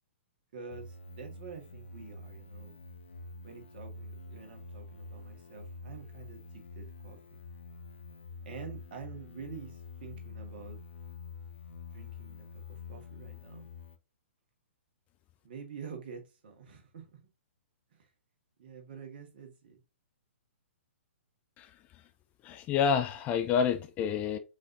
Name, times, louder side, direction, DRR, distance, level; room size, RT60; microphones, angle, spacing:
voice 1, 0.5-2.8 3.4-7.2 8.4-10.8 11.9-13.7 15.4-17.2 18.0-18.1 18.6-19.8, right 6 dB, 45° right, 1.7 m, -47 dB
sound 1, 0.7-14.0, left 3 dB, 65° left, 0.9 m, -47 dB
voice 2, 22.4-24.4, left 7 dB, 20° left, 0.3 m, -28 dB
5.2 x 4.0 x 2.5 m
figure-of-eight pair, 120°, 7 cm